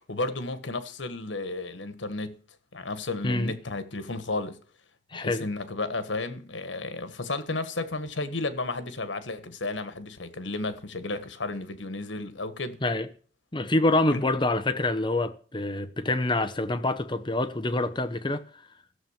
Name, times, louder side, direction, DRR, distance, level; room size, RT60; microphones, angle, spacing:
voice 1, 0.1-2.3 2.7-4.6 5.1-12.8 14.1-14.2, left 2 dB, 85° left, 1.5 m, -33 dB
voice 2, 5.1-5.5 12.8-13.1 13.5-18.6, left 2 dB, 25° left, 0.8 m, -26 dB
15.0 x 7.4 x 7.3 m
head